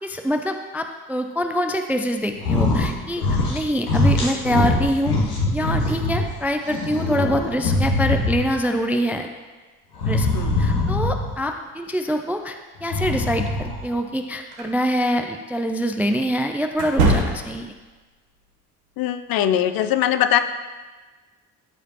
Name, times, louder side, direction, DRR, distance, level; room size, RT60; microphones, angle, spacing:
voice 1, 0.0-3.2 3.5-5.1 5.5-9.3 10.0-10.3 10.6-17.7, equal, 5° right, 5 dB, 0.3 m, -25 dB
sound 1, 2.4-2.9 3.2-3.6 3.9-6.2 6.7-8.6 10.0-11.4 12.8-13.9, left 2 dB, 80° left, 1.1 m, -22 dB
voice 2, 10.3-10.7 19.0-20.4, left 11 dB, 50° left, 10 dB, 0.6 m, -21 dB
sound 2, 14.5-14.7 16.7-17.7, right 2 dB, 80° right, 1.2 m, -22 dB
13.0 x 4.9 x 2.9 m, 1.3 s
figure-of-eight pair, 50°, 47 cm